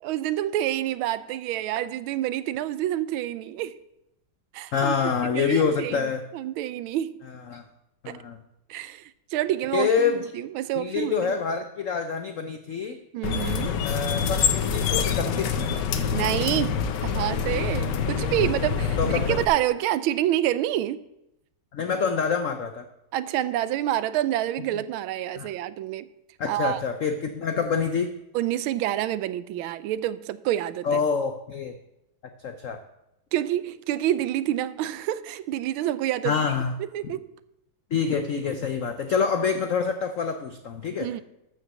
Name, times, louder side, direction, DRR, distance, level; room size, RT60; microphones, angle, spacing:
voice 1, 0.0-3.8 4.5-5.0 5.3-6.1 6.3-7.3 8.1-8.2 8.7-11.3 13.1-13.8 16.1-21.0 23.1-26.1 26.5-26.8 28.3-31.0 33.3-36.4 36.8-37.3 41.0-41.2, right 13 dB, 85° right, 1.4 m, -28 dB
voice 2, 4.7-6.2 7.5-7.6 8.0-8.4 9.7-10.2 10.7-13.0 13.8-15.7 19.0-19.4 21.7-22.9 25.4-25.5 26.4-28.1 30.8-31.7 32.4-32.8 36.2-36.7 37.9-41.1, left 6 dB, 85° left, 0.7 m, -26 dB
sound 1, 13.2-19.5, left 6 dB, 65° left, 1.3 m, -26 dB
13.5 x 5.8 x 6.2 m
omnidirectional pair, 2.2 m